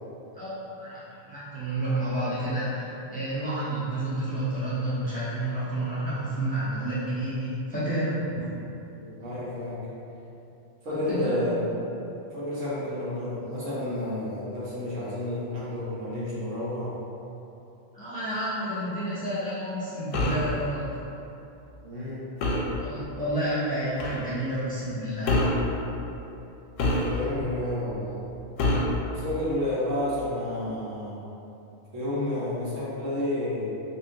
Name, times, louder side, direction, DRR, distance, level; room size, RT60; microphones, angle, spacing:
voice 1, 0.8-8.2 11.1-11.3 17.9-21.0 22.8-25.4, right 1 dB, 10° left, -12 dB, 0.8 m, -30 dB
voice 2, 8.9-9.8 10.8-11.7 12.3-16.9 21.8-22.3 27.0-28.3 29.1-31.2 31.9-33.7, left 1 dB, 85° right, -8 dB, 1.3 m, -30 dB
sound 1, 20.1-20.5 22.4-22.8 24.0-24.2 25.3-25.7 26.8-27.4 28.6-29.0, left 2 dB, 85° left, 0.9 m, -25 dB
3.8 x 2.7 x 2.6 m, 2.9 s
omnidirectional pair, 1.3 m